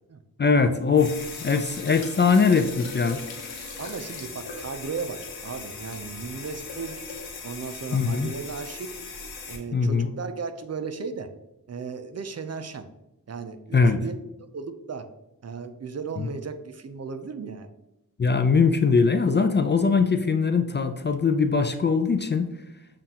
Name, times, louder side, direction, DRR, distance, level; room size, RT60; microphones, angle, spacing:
voice 1, 0.4-3.2 7.9-8.3 9.7-10.1 13.7-14.0 16.2-16.3 18.2-22.5, left 5 dB, 30° left, 7 dB, 0.4 m, -21 dB
sound 1, 0.9-9.6, left 4 dB, 85° left, 1.0 m, -39 dB
voice 2, 3.8-7.0 7.4-8.9 9.5-11.3 11.7-12.9 13.3-14.1 14.4-15.1 15.4-17.7, right 5 dB, 45° right, 9 dB, 0.5 m, -35 dB
7.2 x 2.5 x 2.8 m, 0.89 s
cardioid pair, 55°, 36 cm